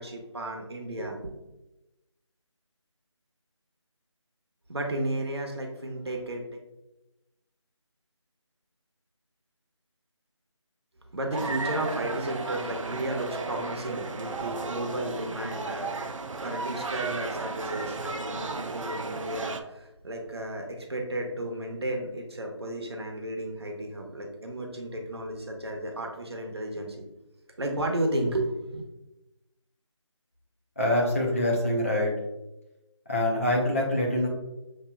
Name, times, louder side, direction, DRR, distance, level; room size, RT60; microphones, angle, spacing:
voice 1, 0.0-1.4 4.7-6.5 11.1-27.0 27.6-28.8, right 1 dB, 55° right, 1 dB, 0.9 m, -33 dB
sound 1, 11.3-19.6, right 4 dB, 85° right, 0.5 m, -34 dB
voice 2, 30.8-32.1 33.1-34.3, left 1 dB, 25° left, -3 dB, 0.7 m, -25 dB
6.8 x 2.9 x 2.2 m, 0.98 s
figure-of-eight pair, 170°, 16 cm